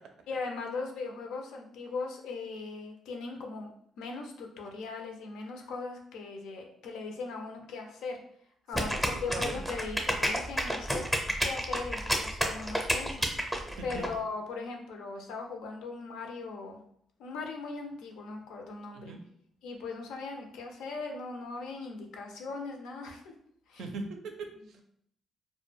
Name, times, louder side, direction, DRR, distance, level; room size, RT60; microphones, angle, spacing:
voice 1, 0.3-3.7 4.0-8.2 8.7-11.0 11.4-13.3 13.8-16.8 17.2-19.1 19.6-23.2 23.7-23.9 24.5-24.8, left 4 dB, 90° left, 2 dB, 0.4 m, -39 dB
sound 1, 8.7-14.1, equal, ahead, 0.5 m, -30 dB
voice 2, 8.7-9.6 13.8-14.1 18.9-19.2 23.8-24.5, right 3 dB, 75° right, 4 dB, 0.4 m, -40 dB
2.2 x 2.1 x 3.2 m, 0.67 s
cardioid pair, 90°, 0 cm